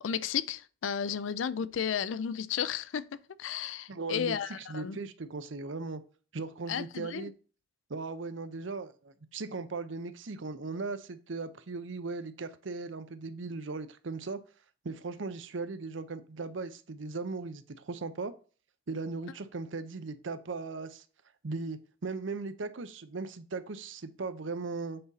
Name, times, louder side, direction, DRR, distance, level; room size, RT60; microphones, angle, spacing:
voice 1, 0.0-3.1 3.4-5.0 6.7-7.3, left 8 dB, 80° left, 0.4 m, -33 dB
voice 2, 3.9-6.0 6.3-7.3 7.9-14.4 14.8-18.3 18.9-21.0 21.4-25.0, right 3 dB, 70° right, 0.7 m, -38 dB
7.7 x 4.1 x 4.0 m
head